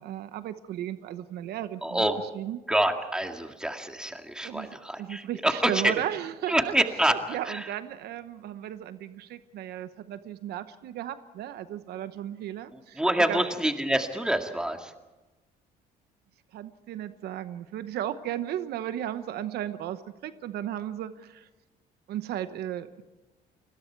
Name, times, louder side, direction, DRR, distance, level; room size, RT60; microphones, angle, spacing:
voice 1, 0.0-2.0 2.3-2.6 4.4-4.7 5.0-6.7 7.1-13.0 13.3-13.4 16.5-21.5 22.1-23.0, right 11 dB, 75° right, 12 dB, 1.0 m, -35 dB
voice 2, 1.8-2.2 2.7-6.0 6.5-7.7 12.7-14.9, right 1 dB, 5° right, 5 dB, 2.0 m, -27 dB
29.5 x 21.5 x 4.6 m, 1.1 s
cardioid pair, 110°, 17 cm